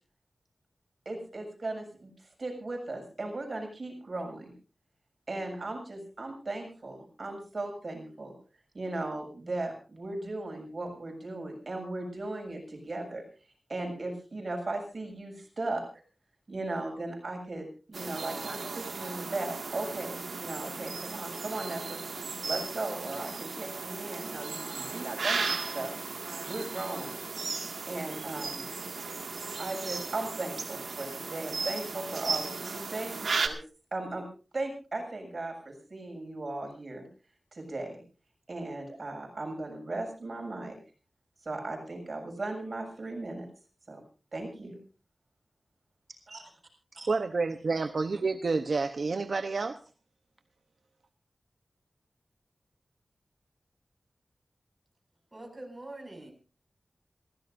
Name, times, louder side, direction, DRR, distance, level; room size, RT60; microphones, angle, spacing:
voice 1, 1.1-4.5 5.3-8.3 8.7-13.2 13.7-15.8 16.5-25.9 26.4-27.1 27.9-28.7 29.6-33.6 33.9-34.2 34.5-37.0 37.5-38.0 38.5-40.8 41.4-43.5 43.9-44.0 44.3-44.8 46.3-46.5 47.0-47.1, right 2 dB, 50° right, 2 dB, 7.0 m, -37 dB
sound 1, 17.9-33.5, right 4 dB, 90° right, 2.1 m, -36 dB
voice 2, 47.1-49.8, right 4 dB, 65° right, 7 dB, 0.9 m, -29 dB
voice 3, 55.3-56.3, right 2 dB, 25° right, 2 dB, 6.6 m, -44 dB
27.5 x 16.5 x 2.7 m, 0.36 s
wide cardioid pair, 100°, 0 cm